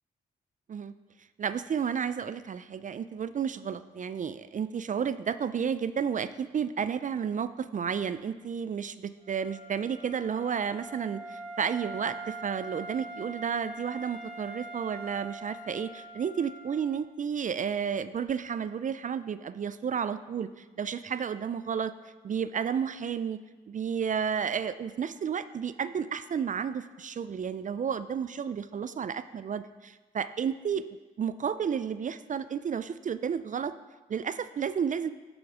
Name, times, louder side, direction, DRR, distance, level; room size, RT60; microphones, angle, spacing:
voice 1, 1.4-21.9 22.2-23.4 23.7-30.8 31.2-33.7 34.1-35.1, right 7 dB, 40° right, 13 dB, 0.4 m, -32 dB
Wind instrument woodwind instrument, 9.2-17.0, right 2 dB, 65° right, 2.1 m, -43 dB
8.6 x 3.7 x 4.7 m, 1.2 s
supercardioid pair, 45°, 20 cm